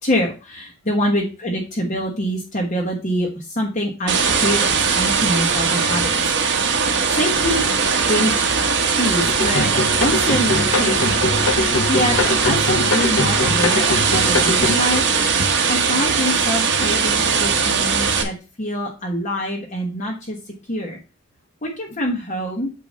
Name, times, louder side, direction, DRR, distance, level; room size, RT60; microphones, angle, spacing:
voice 1, 0.0-6.5 7.1-7.7 8.1-8.4 8.9-11.3 11.9-12.2 12.4-15.0 15.7-21.0 21.6-22.7, equal, 35° left, -2 dB, 1.3 m, -25 dB
sound 1, 4.1-18.2, right 5 dB, 55° right, 1.3 m, -19 dB
sound 2, 9.2-14.7, left 3 dB, 70° left, 0.8 m, -23 dB
8.5 x 3.0 x 6.3 m, 0.30 s
head